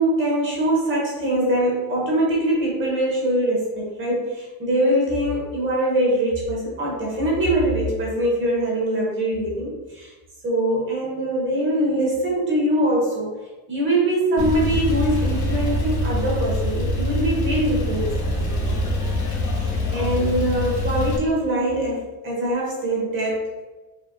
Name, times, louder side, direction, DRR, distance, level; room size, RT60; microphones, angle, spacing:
voice 1, 0.0-10.1 10.4-13.3 13.7-18.3 19.6-23.6, right 1 dB, 30° right, -3 dB, 0.7 m, -23 dB
Male speech man speaking / Car / Idling, 14.4-21.2, left 1 dB, 40° left, 0.7 m, -24 dB
4.5 x 2.7 x 2.5 m, 1.2 s
cardioid pair, 175°, 43 cm